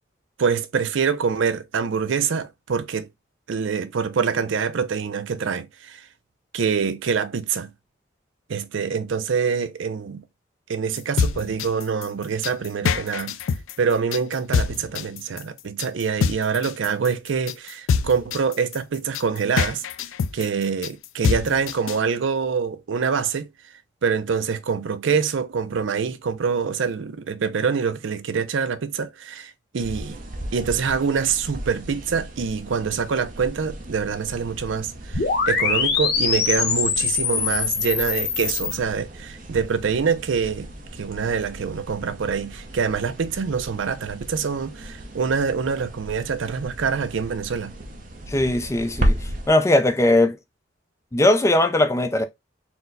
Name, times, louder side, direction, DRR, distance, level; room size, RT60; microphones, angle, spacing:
voice 1, 0.4-3.1 3.5-6.0 6.5-7.7 8.5-10.2 10.7-13.4 13.8-19.8 20.3-23.5 24.0-30.2 30.5-47.7, right 6 dB, 75° right, 0.5 m, -25 dB
sound 1, 11.0-22.0, left 6 dB, 85° left, 0.3 m, -25 dB
sound 2, 29.8-49.5, equal, 40° right, 0.8 m, -34 dB
sound 3, 35.1-38.7, left 6 dB, 50° left, 1.0 m, -23 dB
voice 2, 48.3-49.2 49.5-50.4 51.1-52.2, left 1 dB, 15° left, 0.4 m, -19 dB
4.3 x 2.1 x 3.8 m
head